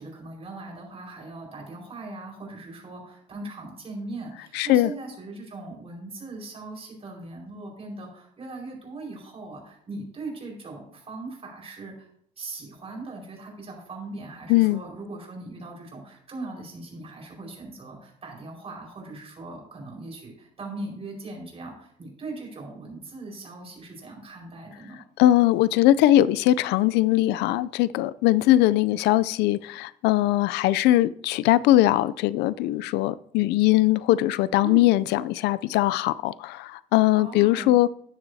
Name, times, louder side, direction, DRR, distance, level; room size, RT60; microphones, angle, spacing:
voice 1, 0.0-12.1 12.4-25.0 34.6-34.9 37.1-37.8, right 2 dB, 35° right, 4.8 m, -39 dB
voice 2, 4.5-4.9 14.5-14.8 25.2-37.9, left 15 dB, 85° left, 0.4 m, -21 dB
13.0 x 10.0 x 2.7 m
cardioid pair, 110°, 17 cm